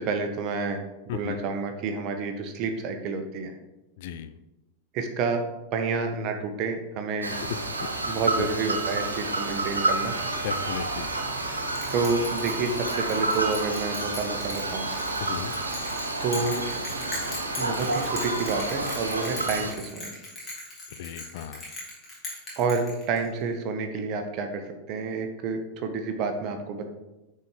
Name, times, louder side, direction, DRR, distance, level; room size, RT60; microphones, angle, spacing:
voice 1, 0.0-3.5 4.9-5.4 5.7-7.3 8.0-10.1 11.9-14.9 16.2-16.7 17.6-20.1 22.6-24.6 24.9-26.9, right 4 dB, 40° right, 6 dB, 1.0 m, -29 dB
voice 2, 1.1-1.4 4.0-4.3 7.5-7.9 8.4-8.5 10.4-11.1 15.2-15.6 21.0-21.6, left 9 dB, 50° left, 11 dB, 0.4 m, -35 dB
sound 1, 7.2-19.7, right 2 dB, 80° right, 0.8 m, -29 dB
Bell, 11.7-23.4, left 2 dB, 20° left, 2.7 m, -39 dB
9.2 x 4.3 x 3.8 m, 1.0 s
figure-of-eight pair, 90°, 0 cm